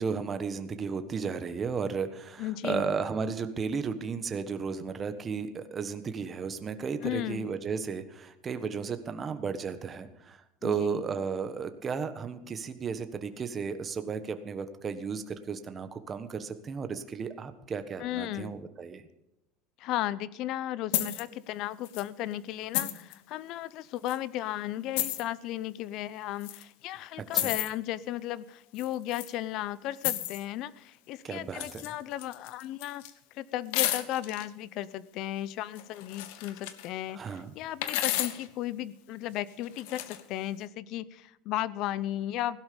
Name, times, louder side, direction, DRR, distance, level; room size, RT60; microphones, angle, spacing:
voice 1, 0.0-19.0 27.3-27.5 31.2-31.9 37.1-37.5, right 5 dB, 25° right, 9 dB, 1.3 m, -34 dB
voice 2, 2.4-2.9 7.0-7.5 10.6-11.0 18.0-18.5 19.8-33.0 33.3-42.6, left 13 dB, 50° left, 19 dB, 0.7 m, -35 dB
sound 1, 20.9-21.2 21.8-22.0 22.7-23.1 24.1-24.2 25.0-25.2 26.4-26.6 27.3-27.7 28.8-29.3 30.0-30.4 31.5-31.9 32.2-33.1 33.7-34.4 35.8-36.9 37.8-38.5 39.6-40.2, left 14 dB, 75° left, 1.4 m, -32 dB
16.5 x 12.0 x 5.3 m, 0.87 s
supercardioid pair, 145°, 0 cm